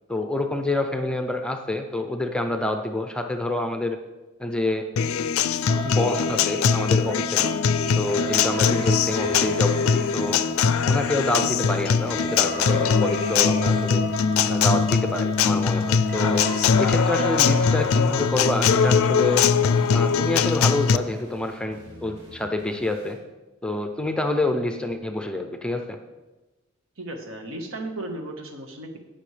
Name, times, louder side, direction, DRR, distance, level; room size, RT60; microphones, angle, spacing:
voice 1, 0.1-4.0 4.4-4.9 5.8-7.5 7.9-10.4 10.9-14.0 14.5-16.5 16.8-19.4 19.9-23.2 23.6-26.0, left 2 dB, 5° left, 5 dB, 0.5 m, -27 dB
Acoustic guitar, 5.0-21.0, left 6 dB, 80° left, 0.4 m, -21 dB
sound 1, 5.7-21.2, right 3 dB, 45° right, 1.9 m, -36 dB
sound 2, 8.0-23.1, equal, 30° right, 3.1 m, -47 dB
voice 2, 27.0-29.0, right 1 dB, 70° right, 3 dB, 1.4 m, -35 dB
18.0 x 6.2 x 3.3 m, 1.1 s
head